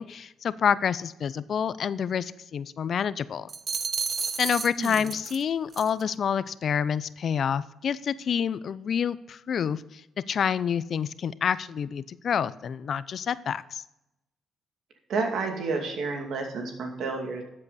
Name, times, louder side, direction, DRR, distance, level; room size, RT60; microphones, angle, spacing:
voice 1, 0.0-3.5 4.4-13.8, left 7 dB, 55° left, 16 dB, 0.5 m, -28 dB
sound 1, 3.5-5.4 5.7-6.0, right 5 dB, 40° right, 0.9 m, -32 dB
voice 2, 4.8-5.1 15.1-17.4, right 4 dB, 70° right, 3 dB, 2.5 m, -30 dB
13.0 x 7.7 x 4.2 m, 0.89 s
cardioid pair, 90°, 0 cm